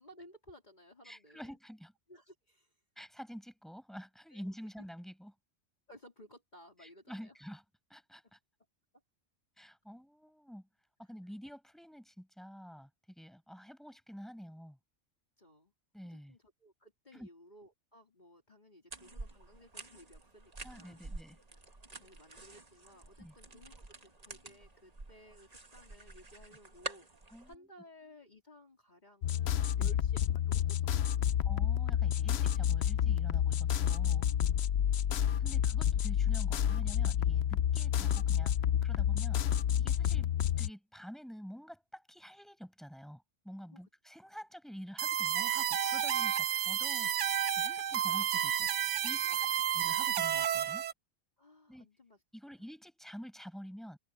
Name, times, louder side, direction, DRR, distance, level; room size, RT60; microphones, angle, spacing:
voice 1, 0.0-1.6 2.1-2.8 4.3-4.5 5.9-7.3 11.0-11.1 15.4-15.7 16.1-21.0 21.9-31.4 34.2-34.4 34.9-35.2 43.7-43.8 49.3-49.8 51.4-52.2, equal, 40° left, 4.0 m, -58 dB
voice 2, 1.0-1.9 3.0-5.3 6.8-7.6 7.9-8.4 9.6-10.7 11.0-14.8 15.9-16.4 17.1-17.3 20.6-21.4 23.2-23.3 27.3-27.5 29.8-29.9 31.4-34.3 35.4-38.5 38.8-39.4 39.8-40.3 40.6-47.1 47.5-48.7 49.0-49.5 49.7-50.9 51.7-51.9 52.3-54.0, equal, ahead, 7.6 m, -48 dB
sound 1, 18.9-27.5, right 2 dB, 35° right, 1.8 m, -48 dB
sound 2, 29.2-40.7, left 10 dB, 65° left, 0.9 m, -29 dB
sound 3, 45.0-50.9, right 10 dB, 90° right, 1.1 m, -31 dB
omnidirectional pair, 1.2 m